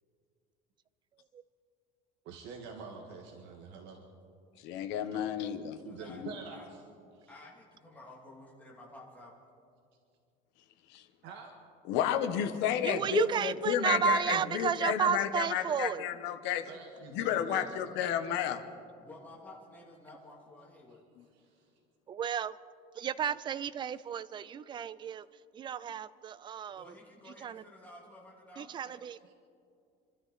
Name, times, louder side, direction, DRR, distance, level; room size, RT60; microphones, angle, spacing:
voice 1, 2.2-4.0 5.1-5.3 5.8-6.8 7.1-7.3 11.2-11.5 16.7-17.7 18.2-18.5 21.3-21.7, right 5 dB, 70° right, 2 dB, 1.8 m, -47 dB
voice 2, 4.6-5.8 6.1-6.4 10.9-11.0 11.8-16.7 17.1-18.6, left 9 dB, 65° left, 7 dB, 1.2 m, -32 dB
voice 3, 5.8-6.2 6.5-6.7 7.3-9.3 19.0-21.0 26.7-29.0, left 2 dB, 10° left, -4 dB, 2.9 m, -52 dB
voice 4, 12.8-16.1 22.1-22.6 22.9-25.3 25.5-26.8 27.4-27.6 28.6-29.3, right 7 dB, 25° right, 17 dB, 0.4 m, -32 dB
26.5 x 12.5 x 4.2 m, 2.4 s
cardioid pair, 165°, 19 cm